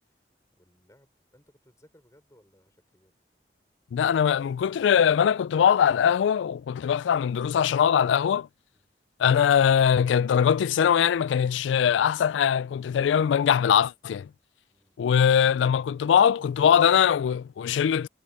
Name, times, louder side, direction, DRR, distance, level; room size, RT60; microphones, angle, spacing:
voice 1, 0.6-3.1 8.7-8.9 14.7-15.0, equal, 15° left, 5.6 m, -61 dB
voice 2, 3.9-8.5 9.2-14.3 15.0-18.1, left 8 dB, 90° left, 0.3 m, -22 dB
head